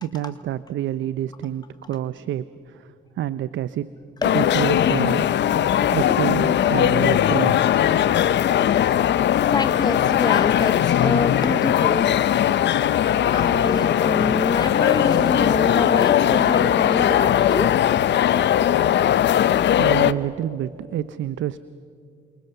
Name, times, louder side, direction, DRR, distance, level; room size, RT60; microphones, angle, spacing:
voice 1, 0.0-3.9 4.3-5.3 5.9-7.7 19.7-21.6, right 12 dB, 70° right, 15 dB, 0.7 m, -28 dB
sound 1, 4.2-20.1, left 10 dB, 65° left, 0.8 m, -19 dB
voice 2, 8.6-9.1 9.5-12.2 13.3-17.7, left 3 dB, 20° left, 9 dB, 1.1 m, -27 dB
28.5 x 25.5 x 6.8 m, 2.4 s
cardioid pair, 90°, 20 cm